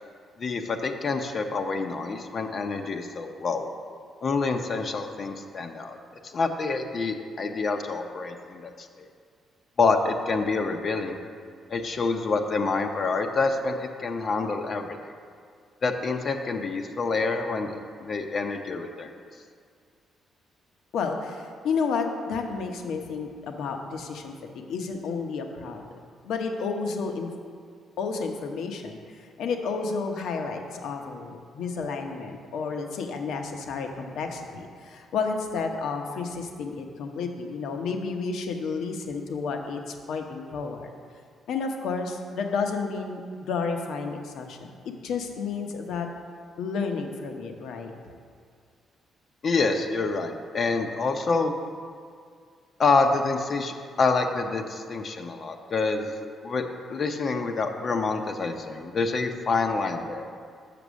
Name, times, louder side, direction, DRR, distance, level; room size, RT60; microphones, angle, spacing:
voice 1, 0.4-3.7 4.2-6.0 6.3-9.1 9.8-11.2 11.7-14.9 15.8-19.1 49.4-51.5 52.8-56.1 56.4-56.6 56.9-60.3, left 4 dB, 50° left, 4 dB, 0.6 m, -27 dB
voice 2, 20.9-25.8 26.2-27.3 28.0-40.9 41.5-46.1 46.6-47.9, left 4 dB, 80° left, 4 dB, 0.9 m, -31 dB
6.8 x 5.9 x 6.2 m, 2.1 s
cardioid pair, 90°, 0 cm